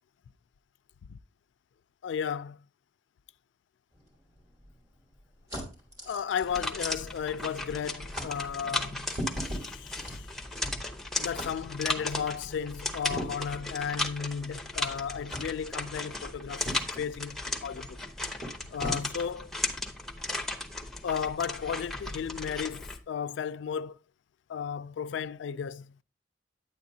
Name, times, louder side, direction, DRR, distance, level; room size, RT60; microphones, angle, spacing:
voice 1, 2.0-2.6 6.1-10.3 11.2-18.0 18.7-19.5 21.0-24.0 24.5-25.9, left 7 dB, 75° left, 0.3 m, -34 dB
sound 1, 3.9-7.4 7.7-7.8 8.1-8.3 9.0-10.9 11.4-11.5 13.0-13.6 14.3-14.4 15.3-15.5 16.6-17.0 18.0-18.1 18.4-19.0, equal, 20° right, 3.1 m, -39 dB
sound 2, 6.4-23.0, left 2 dB, ahead, 0.8 m, -36 dB
9.7 x 8.3 x 2.7 m
head